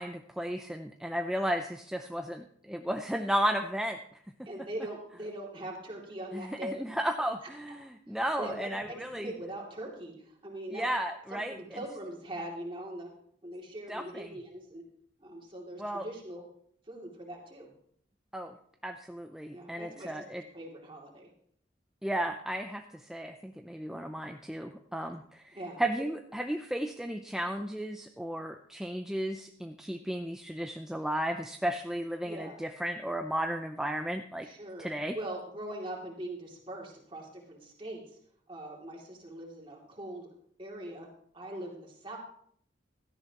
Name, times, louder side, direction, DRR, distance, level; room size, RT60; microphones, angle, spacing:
voice 1, 0.0-4.0 4.4-4.5 6.3-9.3 10.7-11.5 13.9-14.3 15.8-16.1 18.3-18.5 18.8-20.4 22.0-34.5 34.8-35.2, right 1 dB, 5° right, 5 dB, 0.5 m, -34 dB
voice 2, 4.5-6.7 8.1-10.9 11.3-13.1 13.4-14.8 15.2-16.5 16.9-17.7 19.5-21.3 25.0-25.1 25.5-25.8 32.2-32.6 34.4-34.9 35.1-38.2 38.5-40.3 40.6-41.1 41.3-42.2, right 1 dB, 25° right, -2 dB, 2.7 m, -42 dB
16.5 x 13.0 x 3.0 m, 0.65 s
head